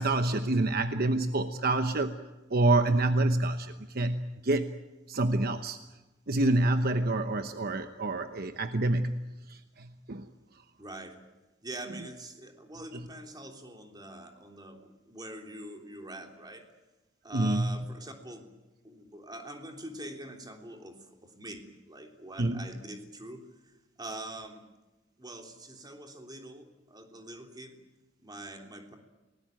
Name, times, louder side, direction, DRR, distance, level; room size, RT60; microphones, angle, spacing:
voice 1, 0.0-2.2 2.5-4.7 5.1-5.8 6.3-10.2 17.3-17.8 22.4-22.6, right 2 dB, 55° right, 8 dB, 1.0 m, -27 dB
voice 2, 10.8-11.2 11.6-16.7 17.2-18.5 18.8-24.7 25.2-27.8 28.2-28.9, right 1 dB, 20° right, 3 dB, 3.3 m, -44 dB
29.5 x 19.5 x 9.1 m, 1.1 s
head